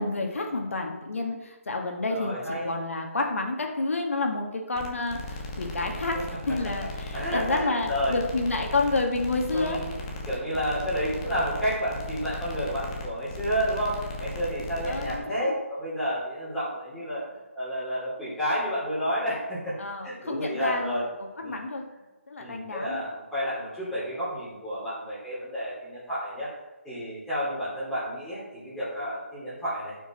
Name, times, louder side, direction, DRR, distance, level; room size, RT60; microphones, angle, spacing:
voice 1, 0.0-2.4 2.6-6.2 6.5-9.8 14.8-15.5 19.8-21.0 21.4-21.8 22.3-23.0, left 3 dB, 70° left, 2 dB, 1.8 m, -29 dB
voice 2, 2.1-2.7 6.1-6.6 7.1-8.2 9.5-17.2 17.5-19.8 20.0-21.1 21.4-21.6 22.4-26.5 26.8-30.0, equal, 5° left, -11 dB, 3.2 m, -30 dB
sound 1, 4.8-15.2, left 1 dB, 25° left, 1.2 m, -37 dB
11.5 x 5.9 x 4.4 m, 1.1 s
figure-of-eight pair, 160°, 7 cm